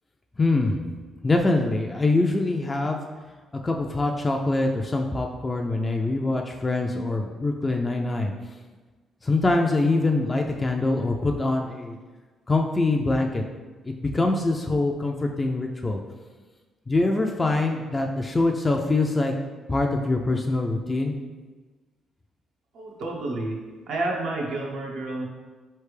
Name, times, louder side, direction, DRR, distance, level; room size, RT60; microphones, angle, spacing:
voice 1, 0.4-0.8 1.2-3.0 3.6-8.3 9.2-12.0 12.5-13.4 13.9-16.0 16.9-19.3 19.7-21.1, left 2 dB, 25° left, 2 dB, 0.3 m, -24 dB
voice 2, 22.7-23.6 23.9-25.3, right 2 dB, 80° right, -2 dB, 0.8 m, -30 dB
4.1 x 3.3 x 3.2 m, 1.3 s
cardioid pair, 90°, 0 cm